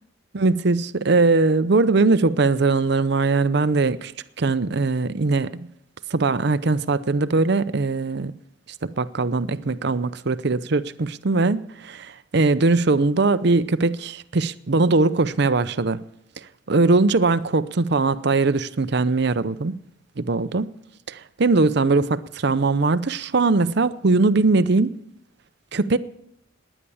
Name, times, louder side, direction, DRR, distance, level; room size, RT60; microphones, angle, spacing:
voice 1, 0.3-4.1 4.4-5.7 6.1-8.3 8.8-16.0 16.7-19.7 20.2-20.7 21.1-25.0 25.7-26.0, right 3 dB, 60° right, 0.7 m, -20 dB
18.5 x 10.0 x 7.1 m
head